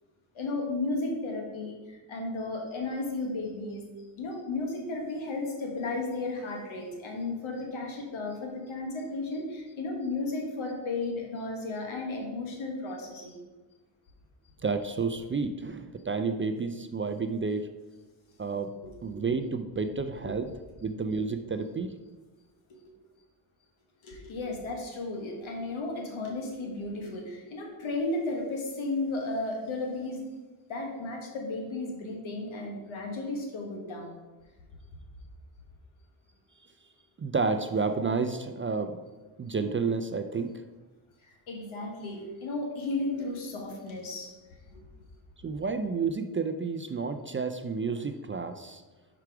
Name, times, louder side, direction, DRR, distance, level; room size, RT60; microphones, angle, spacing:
voice 1, 0.3-3.8 4.2-13.3 18.8-18.9 20.2-20.3 22.7-22.9 24.0-30.2 30.7-34.2 41.3-44.3 44.7-44.8, left 2 dB, 75° left, 1 dB, 1.7 m, -34 dB
voice 2, 14.6-17.7 18.4-18.7 19.0-20.5 20.8-21.9 37.2-39.0 39.4-40.6 45.4-48.8, right 4 dB, 25° right, 9 dB, 0.4 m, -30 dB
5.9 x 5.0 x 4.6 m, 1.2 s
cardioid pair, 65°, 48 cm